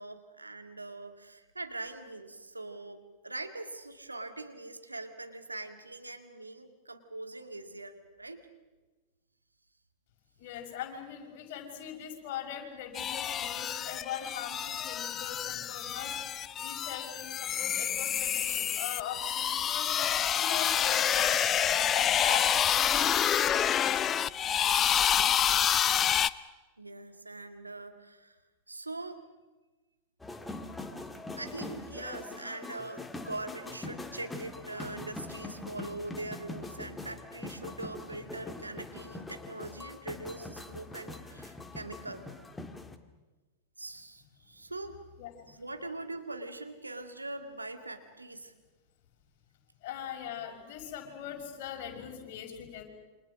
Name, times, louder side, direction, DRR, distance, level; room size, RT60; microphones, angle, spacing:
voice 1, 0.0-8.4 26.8-28.4 28.7-29.3 31.4-42.3 43.8-45.0 45.5-48.5, right 2 dB, 90° right, 7 dB, 2.0 m, -42 dB
voice 2, 10.4-16.2 16.6-24.2 45.2-45.5 49.8-52.8, left 9 dB, 50° left, 2 dB, 5.8 m, -41 dB
sound 1, 13.0-26.3, left 9 dB, 30° left, 0.7 m, -28 dB
sound 2, 30.2-43.0, left 2 dB, 10° left, 1.9 m, -43 dB
28.5 x 25.5 x 6.3 m, 1.2 s
figure-of-eight pair, 90°, 0 cm